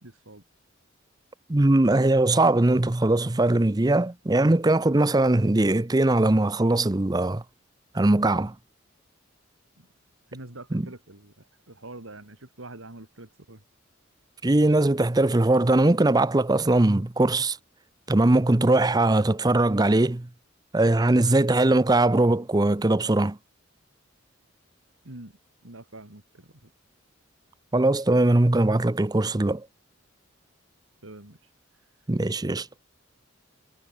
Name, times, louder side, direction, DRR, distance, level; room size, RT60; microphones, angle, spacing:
voice 1, 0.0-0.4 9.8-9.9 10.3-13.6 25.0-25.3 25.6-26.7 31.0-31.4, right 2 dB, 80° right, 3.6 m, -45 dB
voice 2, 1.5-7.4 7.9-8.5 10.7-10.9 14.4-17.6 18.1-20.3 20.7-23.4 27.7-29.7 32.1-32.7, right 2 dB, 20° right, 0.6 m, -21 dB
head